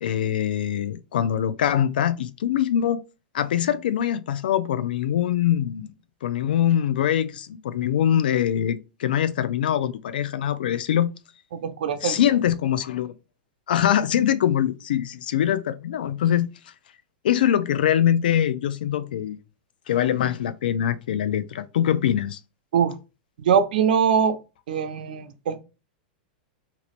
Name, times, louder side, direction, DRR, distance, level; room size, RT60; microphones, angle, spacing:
voice 1, 0.0-3.0 3.3-5.9 6.2-11.1 12.0-13.1 13.7-16.5 17.2-19.4 19.9-22.4, left 10 dB, 85° left, 0.4 m, -23 dB
voice 2, 11.5-12.2 22.7-22.9 23.4-24.4 24.7-25.6, right 7 dB, 80° right, 0.6 m, -22 dB
2.9 x 2.5 x 3.0 m
supercardioid pair, 140°, 5 cm